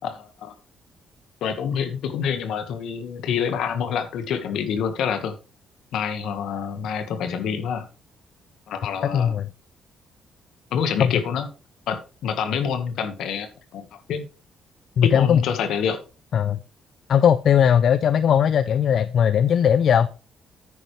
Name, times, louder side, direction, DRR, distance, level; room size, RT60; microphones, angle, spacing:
voice 1, 0.0-0.5 1.4-5.4 5.9-7.9 8.7-9.3 10.7-11.5 11.9-14.3 15.0-16.0, left 7 dB, 80° left, 1.6 m, -27 dB
voice 2, 9.0-9.5 11.0-11.1 15.0-15.4 16.3-16.6 17.1-20.1, left 8 dB, 65° left, 0.5 m, -18 dB
9.7 x 9.2 x 3.3 m
cardioid pair, 90°, 0 cm